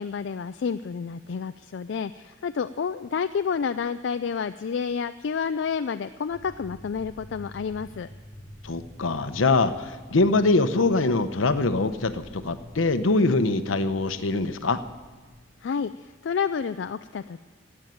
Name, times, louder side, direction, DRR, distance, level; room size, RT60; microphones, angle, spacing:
voice 1, 0.0-8.1 15.6-17.4, left 6 dB, 60° left, 10 dB, 0.4 m, -29 dB
sound 1, 6.3-15.7, left 1 dB, 35° left, 1.5 m, -47 dB
voice 2, 8.6-14.8, left 3 dB, 80° left, 11 dB, 0.8 m, -23 dB
14.5 x 8.8 x 9.3 m, 1.3 s
head